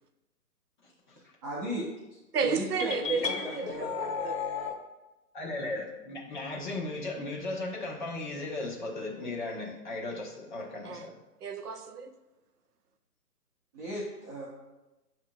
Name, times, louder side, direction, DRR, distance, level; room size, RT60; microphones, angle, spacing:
voice 1, 0.8-1.2 5.3-11.2, left 2 dB, 30° left, 0.9 m, -36 dB
voice 2, 1.4-3.9 13.7-14.5, right 1 dB, 25° right, 0.7 m, -37 dB
voice 3, 2.3-4.4 10.8-11.1 11.4-12.2, right 5 dB, 70° right, 0.6 m, -33 dB
sound 1, 2.8-4.8, left 6 dB, 90° left, 0.8 m, -34 dB
8.3 x 2.8 x 2.2 m
figure-of-eight pair, 140°, 48 cm